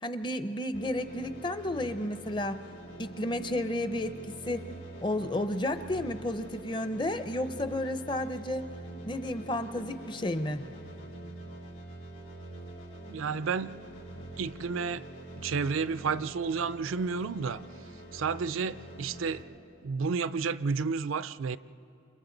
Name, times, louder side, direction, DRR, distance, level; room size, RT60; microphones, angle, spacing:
voice 1, 0.0-2.6 3.0-4.2 4.5-4.7 5.0-8.7 9.1-10.6, left 1 dB, 25° left, 10 dB, 0.6 m, -32 dB
sound 1, 0.7-19.4, right 1 dB, 80° left, 5.2 m, -45 dB
voice 2, 13.1-13.8 14.4-15.0 15.4-17.6 18.1-19.4 19.8-21.6, right 5 dB, 75° right, 15 dB, 0.4 m, -31 dB
29.0 x 28.5 x 3.9 m, 2.6 s
head